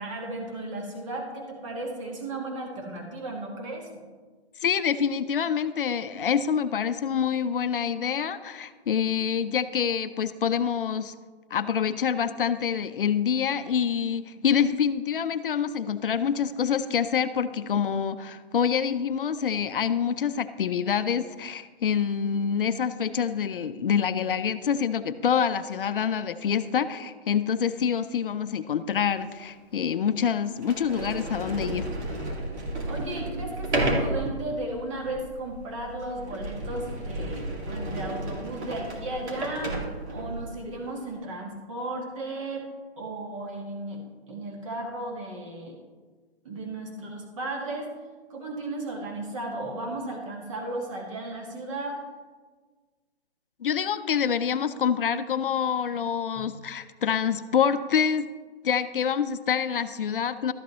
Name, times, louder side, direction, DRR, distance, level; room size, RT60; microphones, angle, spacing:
voice 1, 0.0-3.9 32.8-39.8 40.1-42.7 43.0-44.0 44.3-45.8 46.4-47.9 48.3-52.0 56.3-56.4, right 2 dB, 30° right, 0 dB, 1.6 m, -35 dB
voice 2, 4.6-11.1 11.5-31.9 53.6-58.3 58.6-60.5, left 7 dB, 55° left, 12 dB, 0.6 m, -26 dB
Sliding door, 29.2-29.3 30.0-30.1 30.6-40.5, right 1 dB, 90° right, 2.5 m, -32 dB
13.0 x 8.6 x 3.1 m, 1.4 s
hypercardioid pair, 170°, 33 cm